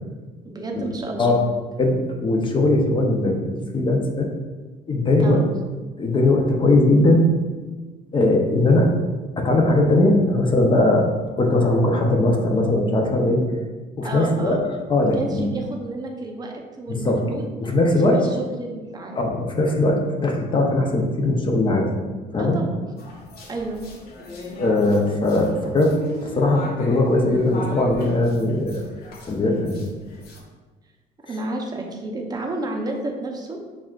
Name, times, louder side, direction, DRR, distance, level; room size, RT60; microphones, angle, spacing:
voice 1, 0.4-1.3 5.2-5.4 14.0-14.6 15.1-17.4 18.0-19.2 22.4-22.8 23.5-23.8 31.3-33.6, right 2 dB, 25° right, 1 dB, 0.6 m, -31 dB
voice 2, 1.8-4.3 4.9-5.4 6.0-7.3 8.1-8.9 9.4-11.1 11.4-13.4 14.0-14.6 14.9-15.4 16.9-17.2 17.6-18.3 19.1-21.9 22.3-22.6 24.6-26.0 26.2-28.8 29.3-29.9, left 2 dB, 30° left, 2 dB, 0.6 m, -19 dB
sound 1, 23.0-30.4, left 2 dB, 65° left, 0.7 m, -38 dB
6.1 x 2.4 x 2.4 m, 1.3 s
cardioid pair, 110°, 17 cm